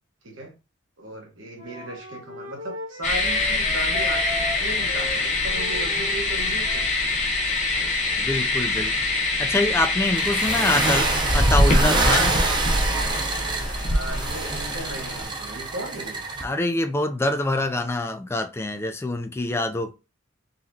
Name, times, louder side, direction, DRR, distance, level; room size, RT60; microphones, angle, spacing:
voice 1, 0.2-0.6 1.0-6.9 7.7-7.9 8.6-8.9 13.9-16.2, right 1 dB, 70° right, 1.3 m, -36 dB
Wind instrument woodwind instrument, 1.6-6.9, left 1 dB, 85° right, 1.7 m, -37 dB
sound 1, 3.0-15.2, left 2 dB, 40° left, 1.0 m, -24 dB
voice 2, 8.2-8.9 9.4-12.3 16.4-19.9, left 2 dB, 15° left, 0.3 m, -25 dB
sound 2, 10.2-16.4, right 2 dB, 25° right, 0.6 m, -26 dB
4.0 x 2.9 x 2.7 m
head